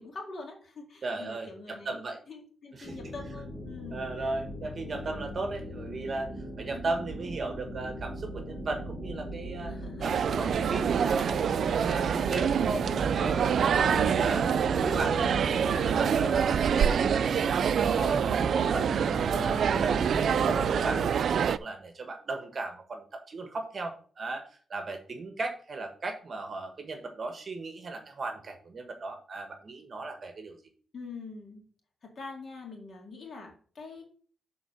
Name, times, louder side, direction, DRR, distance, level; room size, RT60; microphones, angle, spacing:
voice 1, 0.0-2.0 2.3-4.4 9.6-10.2 13.8-14.2 30.9-31.7 32.0-34.0, left 4 dB, 50° left, 1 dB, 2.2 m, -44 dB
voice 2, 1.0-2.2 2.8-3.0 3.9-6.3 6.6-9.7 10.0-13.4 13.9-14.4 14.7-15.3 15.7-18.9 19.3-30.6, right 3 dB, 40° right, 5 dB, 1.2 m, -36 dB
sound 1, 2.8-21.0, equal, 5° right, 2.1 m, -38 dB
sound 2, 10.0-21.6, right 7 dB, 65° right, 0.3 m, -26 dB
7.1 x 3.8 x 6.4 m, 0.43 s
wide cardioid pair, 125°, 0 cm